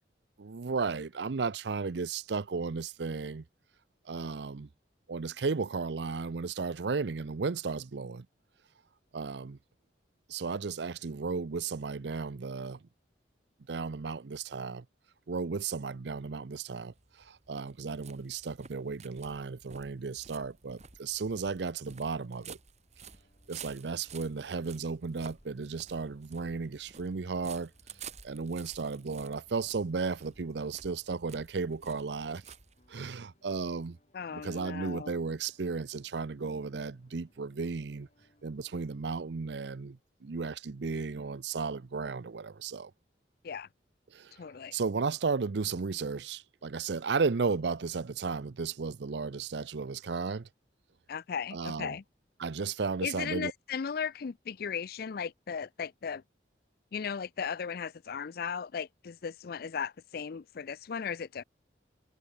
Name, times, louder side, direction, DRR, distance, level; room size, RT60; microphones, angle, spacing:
voice 1, 0.4-3.4 4.1-4.7 5.1-8.3 9.1-9.6 10.3-12.8 13.7-14.9 15.3-22.6 23.5-27.7 28.2-32.4 32.9-34.0 34.3-38.1 38.4-42.9 44.1-44.3 44.7-50.5 51.5-52.0 52.4-53.5, right 4 dB, 70° right, 0.6 m, -34 dB
sound 1, 16.8-33.2, right 6 dB, 40° right, 2.1 m, -52 dB
sound 2, 23.1-39.2, left 1 dB, 40° left, 4.0 m, -69 dB
voice 2, 34.1-35.2 43.4-43.7 44.4-44.7 51.1-52.0 53.0-56.2 56.9-61.4, left 6 dB, 55° left, 0.4 m, -36 dB
head